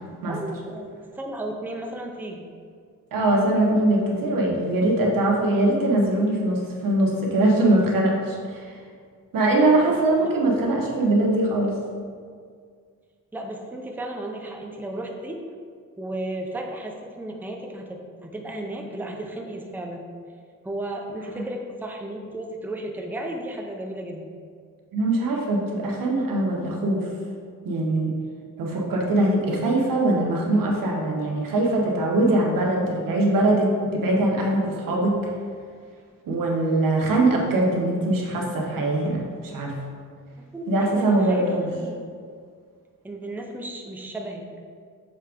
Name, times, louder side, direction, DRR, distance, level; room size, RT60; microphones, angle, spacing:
voice 1, 0.3-2.5 10.2-10.3 13.3-15.4 16.0-20.0 20.6-24.3 40.5-40.7 41.0-41.4 41.7-42.0 43.0-44.4, right 1 dB, 5° right, 1 dB, 0.6 m, -34 dB
voice 2, 3.1-8.8 9.3-11.7 24.9-27.1 27.6-28.1 28.6-35.2 36.3-39.8 40.7-41.7, right 2 dB, 85° right, -1 dB, 1.2 m, -22 dB
6.7 x 3.5 x 5.1 m, 2.1 s
wide cardioid pair, 110°, 33 cm